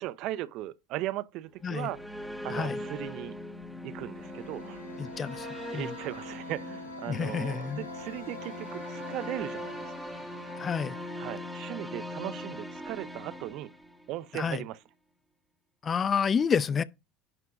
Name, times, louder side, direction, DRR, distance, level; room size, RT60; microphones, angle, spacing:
voice 1, 0.0-3.4 3.8-4.9 5.7-10.1 11.2-13.7 14.1-14.8, right 15 dB, 60° right, 0.6 m, -38 dB
sound 1, 1.5-14.3, left 1 dB, ahead, 1.7 m, -41 dB
sound 2, 4.0-12.6, left 3 dB, 90° left, 1.1 m, -47 dB
voice 2, 5.0-5.5 5.7-5.9 7.1-7.8 10.6-11.0 14.3-14.6 15.8-16.8, left 6 dB, 35° left, 0.6 m, -29 dB
11.0 x 4.5 x 4.8 m
hypercardioid pair, 70°, 0 cm